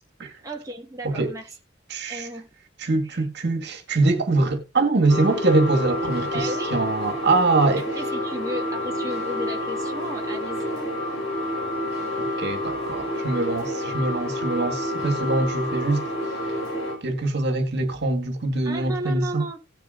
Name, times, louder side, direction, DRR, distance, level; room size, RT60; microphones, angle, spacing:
voice 1, 0.4-1.5 2.1-2.5 3.0-3.2 6.3-6.8 7.8-10.9 18.6-19.6, right 1 dB, 20° right, 1.6 m, -34 dB
voice 2, 1.9-2.3 2.8-7.9 12.2-16.0 17.0-19.5, right 2 dB, 60° right, 1.9 m, -23 dB
sound 1, 5.1-17.0, left 1 dB, 85° left, 4.8 m, -29 dB
17.5 x 6.8 x 2.6 m
head